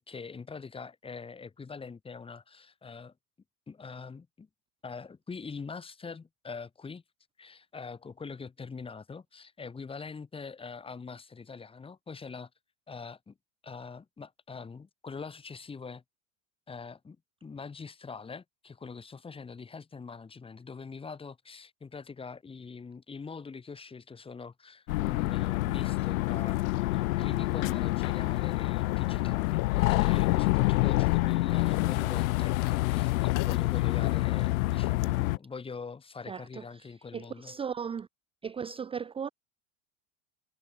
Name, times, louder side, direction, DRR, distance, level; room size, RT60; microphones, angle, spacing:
voice 1, 0.0-3.1 3.7-4.5 4.8-7.0 7.4-12.5 12.9-13.4 13.6-16.0 16.7-17.2 17.4-37.5, left 5 dB, 15° left, 1.7 m, -43 dB
sound 1, 24.9-35.4, left 20 dB, 85° left, 0.5 m, -27 dB
sound 2, 27.6-35.3, left 23 dB, 50° left, 2.9 m, -44 dB
voice 2, 36.3-38.1 38.4-39.3, right 7 dB, 15° right, 0.7 m, -37 dB
supercardioid pair, 130°, 40 cm